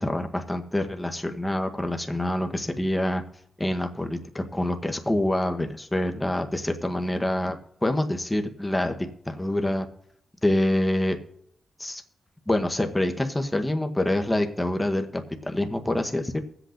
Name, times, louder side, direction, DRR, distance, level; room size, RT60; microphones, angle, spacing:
voice 1, 0.0-3.2 3.6-9.0 9.3-9.9 10.4-11.2 11.8-12.0 12.5-16.4, left 1 dB, 15° left, 5 dB, 1.0 m, -26 dB
23.5 x 8.0 x 2.5 m, 0.74 s
cardioid pair, 75°, 0 cm